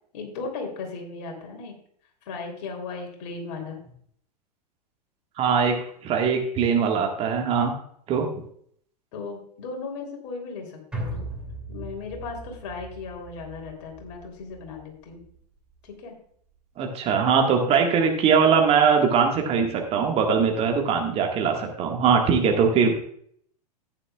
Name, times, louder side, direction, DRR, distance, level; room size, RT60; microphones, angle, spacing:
voice 1, 0.1-1.8 2.2-3.8 9.1-11.3 11.7-15.2 15.8-16.2, left 4 dB, 45° left, 2 dB, 3.2 m, -36 dB
voice 2, 5.4-5.8 6.0-7.7 8.1-8.3 16.8-23.0, right 6 dB, 30° right, 2 dB, 1.7 m, -21 dB
sound 1, 10.9-15.4 15.7-15.8, right 1 dB, 5° right, 2.7 m, -38 dB
14.0 x 9.8 x 2.3 m, 0.64 s
figure-of-eight pair, 95°, 21 cm